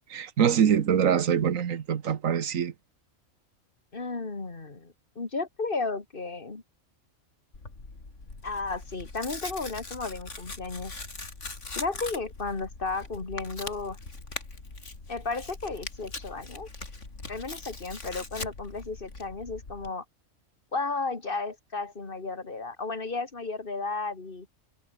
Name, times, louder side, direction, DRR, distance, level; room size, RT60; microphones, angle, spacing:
voice 1, 0.1-2.7, right 8 dB, 85° right, 1.5 m, -24 dB
voice 2, 3.9-6.6 8.4-10.9 11.8-14.0 15.1-16.7 17.3-20.0 20.7-24.5, left 3 dB, 40° left, 2.7 m, -33 dB
Tearing, 7.5-19.9, left 3 dB, 65° left, 3.8 m, -41 dB
omnidirectional pair, 1.3 m